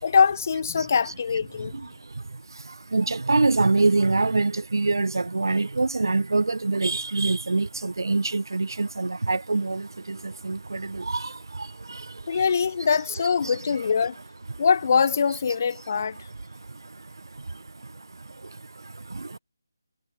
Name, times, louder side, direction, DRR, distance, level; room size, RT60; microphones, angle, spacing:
voice 1, 0.0-1.7 12.3-14.2 14.6-16.2, left 6 dB, 40° left, 5.2 m, -23 dB
voice 2, 2.9-9.8 10.4-11.3, right 3 dB, 80° right, 0.6 m, -24 dB
figure-of-eight pair, 165°, 2 cm